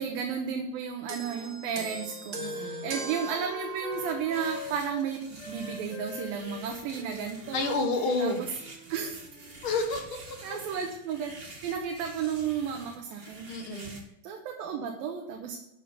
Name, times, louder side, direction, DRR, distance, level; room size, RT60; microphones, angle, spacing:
voice 1, 0.0-5.2 5.5-7.8 8.2-8.5 8.9-9.2 10.4-15.6, right 7 dB, 90° right, 2 dB, 2.9 m, -33 dB
sound 1, 1.1-4.7 5.6-5.7, right 4 dB, 70° right, 0.9 m, -39 dB
Wind instrument woodwind instrument, 1.2-5.1 5.4-8.9 9.2-9.8, left 4 dB, 85° left, 3.2 m, -45 dB
voice 2, 2.4-2.9 7.5-8.4 9.6-10.2 13.5-14.0, left 3 dB, 65° left, 5 dB, 1.2 m, -30 dB
sound 2, 3.9-14.0, right 2 dB, 35° right, 0.9 m, -48 dB
12.0 x 7.5 x 5.3 m, 0.86 s
omnidirectional pair, 4.0 m